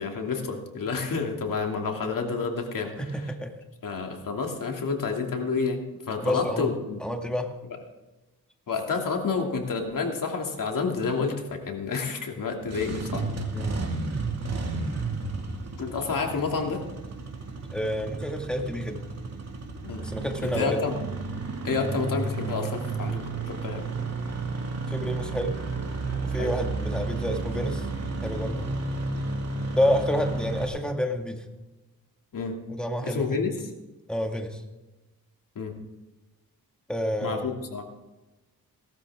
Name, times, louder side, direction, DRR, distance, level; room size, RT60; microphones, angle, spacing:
voice 1, 0.0-2.9 3.8-5.8 6.1-7.0 8.7-13.2 15.8-16.8 19.8-20.0 20.4-20.9 21.6-23.2 23.5-23.8 26.4-26.5 32.3-32.5 33.0-33.5 35.6-35.7 37.2-37.8, left 4 dB, 60° left, 2 dB, 2.8 m, -29 dB
voice 2, 3.0-3.5 6.2-6.7 7.0-7.5 13.5-13.9 17.7-19.0 20.0-20.8 24.9-25.6 26.2-27.9 28.2-28.7 29.7-31.4 32.7-33.4 34.1-34.6 36.9-37.5, equal, ahead, 3 dB, 2.1 m, -29 dB
Engine starting, 12.6-30.7, right 3 dB, 45° right, 2.4 m, -32 dB
18.0 x 12.5 x 3.7 m, 1.1 s
cardioid pair, 75°, 36 cm